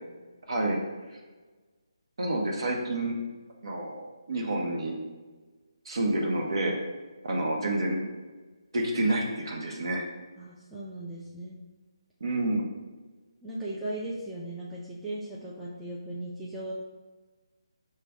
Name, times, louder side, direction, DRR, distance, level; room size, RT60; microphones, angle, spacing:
voice 1, 0.5-0.8 2.2-3.2 3.6-5.0 5.9-6.8 7.2-8.0 8.7-10.0 12.2-12.6, right 1 dB, 60° right, 0 dB, 0.8 m, -28 dB
voice 2, 10.4-11.6 13.4-16.7, right 1 dB, 5° right, -9 dB, 0.4 m, -37 dB
4.9 x 2.2 x 3.5 m, 1.3 s
figure-of-eight pair, 160°, 3 cm